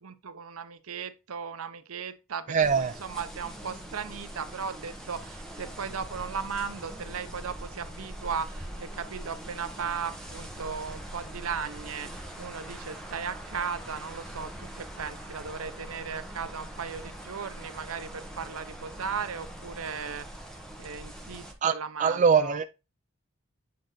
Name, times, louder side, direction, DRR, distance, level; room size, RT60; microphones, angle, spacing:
voice 1, 0.0-20.3 20.8-22.6, right 6 dB, 75° right, 0.7 m, -37 dB
voice 2, 2.5-2.9 21.6-21.7 22.0-22.6, right 6 dB, 35° right, 0.3 m, -22 dB
sound 1, 2.6-21.5, right 1 dB, ahead, 1.1 m, -42 dB
8.6 x 3.8 x 3.8 m
head